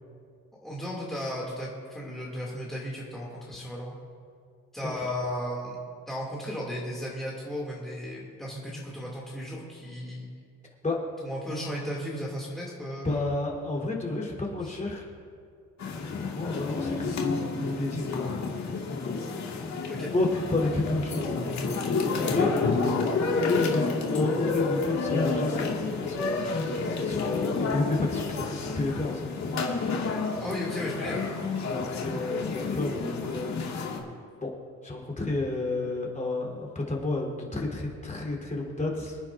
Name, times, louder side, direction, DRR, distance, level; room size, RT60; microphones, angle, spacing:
voice 1, 0.5-3.9 4.7-5.8 6.1-10.3 11.2-13.3 14.6-14.8 19.9-20.1 22.2-22.5 30.3-31.3, equal, ahead, -5 dB, 2.5 m, -35 dB
voice 2, 13.0-15.0 15.9-18.3 19.8-21.3 22.3-22.5 23.4-29.3 31.6-34.0 34.4-34.5 34.8-39.2, left 2 dB, 25° left, -2 dB, 3.6 m, -31 dB
sound 1, 15.8-34.0, left 4 dB, 65° left, 2.0 m, -30 dB
26.5 x 9.9 x 2.6 m, 2.3 s
cardioid pair, 90°, 30 cm